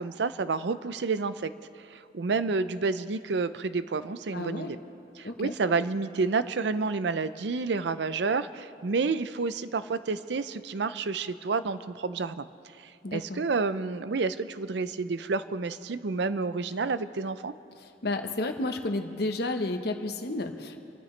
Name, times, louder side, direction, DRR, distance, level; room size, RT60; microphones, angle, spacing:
voice 1, 0.0-1.5 1.9-4.8 5.2-12.5 13.1-17.5, right 4 dB, 70° right, 13 dB, 0.5 m, -29 dB
voice 2, 4.3-4.7 5.2-5.5 13.0-13.4 17.8-20.8, left 2 dB, 60° left, 5 dB, 1.1 m, -31 dB
28.0 x 13.5 x 3.3 m, 2.7 s
head